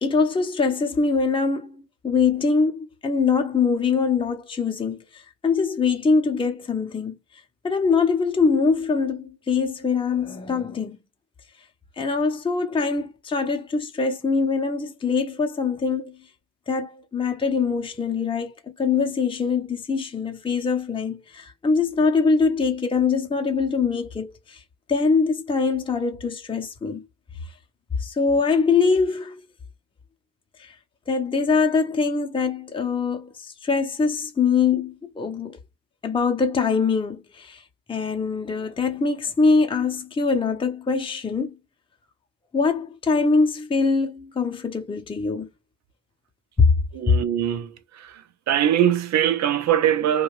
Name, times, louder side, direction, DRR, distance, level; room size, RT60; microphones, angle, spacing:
voice 1, 0.0-7.2 7.6-11.0 12.0-16.2 16.7-24.6 24.9-27.0 28.0-29.4 30.6-30.7 31.1-35.6 36.0-37.6 37.9-41.5 42.5-45.5 46.6-46.7, left 4 dB, 15° left, 0.7 m, -23 dB
voice 2, 46.9-48.2 48.5-50.2, right 10 dB, 65° right, 0.6 m, -22 dB
2.6 x 2.3 x 3.0 m
cardioid pair, 90°, 30 cm